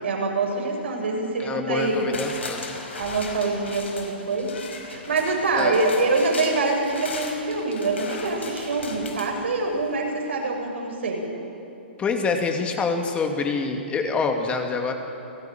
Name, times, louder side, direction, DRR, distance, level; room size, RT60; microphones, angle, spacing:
voice 1, 0.0-2.2 3.0-4.5 4.8-11.3, right 3 dB, 80° right, 1 dB, 7.0 m, -25 dB
voice 2, 1.4-2.6 5.5-5.8 12.0-14.9, left 4 dB, 20° left, 4 dB, 2.5 m, -26 dB
sound 1, 1.8-9.9 10.3-10.4, left 4 dB, 85° left, 5.0 m, -38 dB
28.5 x 17.5 x 9.3 m, 2.8 s
hypercardioid pair, 130°, 6 cm